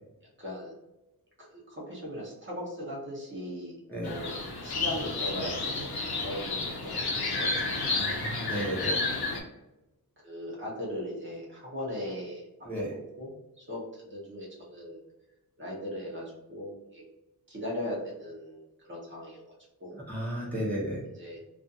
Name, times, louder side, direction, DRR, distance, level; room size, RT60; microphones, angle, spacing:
voice 1, 0.4-0.7 1.4-4.4 4.6-8.0 9.1-9.2 10.2-12.5 12.8-15.0 15.6-17.0 17.5-20.0 21.1-21.4, equal, 30° right, -4 dB, 0.8 m, -39 dB
sound 1, 4.0-9.4, left 3 dB, 75° left, 0.7 m, -31 dB
voice 2, 7.9-9.0 12.6-12.9 19.9-21.0, equal, 5° left, -7 dB, 0.7 m, -33 dB
2.4 x 2.4 x 2.6 m, 0.97 s
wide cardioid pair, 150°, 38 cm